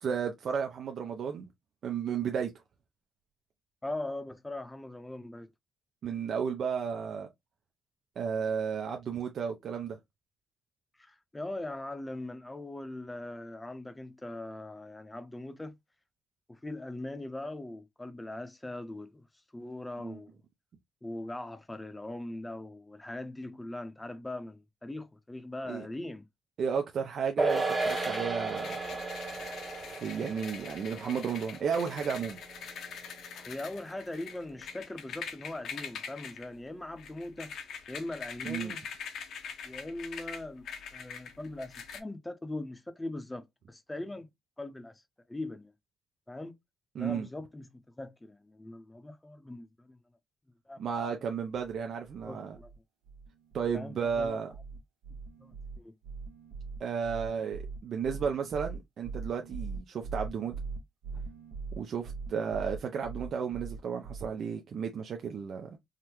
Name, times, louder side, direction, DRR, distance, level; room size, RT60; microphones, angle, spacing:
voice 1, 0.0-1.5 1.8-2.5 6.0-7.3 8.2-10.0 20.0-20.2 25.7-25.9 26.6-28.8 29.8-32.4 38.4-38.8 46.9-47.3 50.8-52.6 53.5-54.5 56.8-60.5 61.7-65.8, right 6 dB, 60° right, 0.5 m, -33 dB
voice 2, 3.8-5.5 11.0-15.8 16.5-19.3 19.5-20.3 21.0-26.3 33.5-37.5 37.9-38.8 39.6-44.3 44.6-45.0 45.3-45.7 46.3-46.6 47.0-47.7 48.0-50.0 50.7-50.9 51.2-51.3 52.3-52.7 53.7-54.4 55.4-55.9 61.1-61.2, left 2 dB, 15° left, 0.6 m, -41 dB
sound 1, 27.4-34.0 34.3-34.4, right 3 dB, 20° right, 0.8 m, -35 dB
sound 2, 27.8-42.0, left 6 dB, 70° left, 0.7 m, -44 dB
sound 3, 51.5-51.8 52.0-52.8 53.0-53.8 54.0-64.3, right 4 dB, 75° right, 0.9 m, -42 dB
3.6 x 2.1 x 3.0 m
cardioid pair, 90°, 0 cm